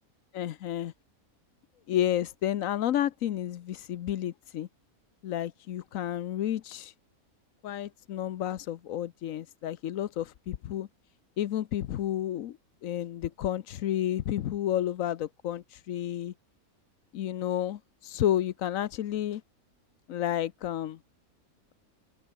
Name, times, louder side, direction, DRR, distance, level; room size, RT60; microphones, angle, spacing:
voice 1, 0.3-0.9 1.9-4.7 5.2-6.9 7.6-10.9 11.4-12.6 12.8-16.3 17.1-19.4 20.1-21.0, left 11 dB, 70° left, 1.1 m, -31 dB
open air
omnidirectional pair, 1.5 m